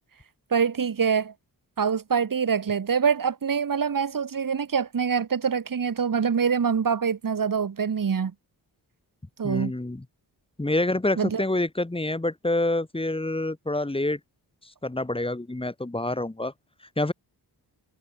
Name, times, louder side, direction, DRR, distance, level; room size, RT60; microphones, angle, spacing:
voice 1, 0.5-1.3 1.8-8.3 9.4-9.7 11.2-11.4, right 6 dB, 55° right, 6.9 m, -25 dB
voice 2, 9.4-10.1 10.6-14.2 14.8-16.5 17.0-17.1, left 2 dB, 15° left, 3.8 m, -27 dB
wide cardioid pair, 110°, 39 cm